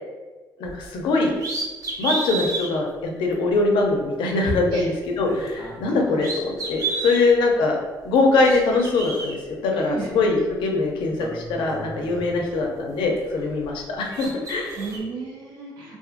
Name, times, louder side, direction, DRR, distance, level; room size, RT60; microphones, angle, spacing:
voice 1, 0.6-1.3 2.0-7.8 8.0-9.4 9.6-14.8, left 3 dB, 80° left, 1 dB, 0.5 m, -22 dB
sound 1, 0.7-0.9 1.3-2.7 3.3-3.4 5.2-5.9 6.2-7.3 8.2-9.3 10.5-10.6 11.0-12.7 13.0-13.8 14.1-15.0, right 3 dB, 45° right, 0.8 m, -31 dB
voice 2, 5.9-6.3 9.8-10.2 14.8-16.0, right 3 dB, 90° right, -3 dB, 0.7 m, -33 dB
2.5 x 2.4 x 2.4 m, 1.3 s
cardioid pair, 80°, 8 cm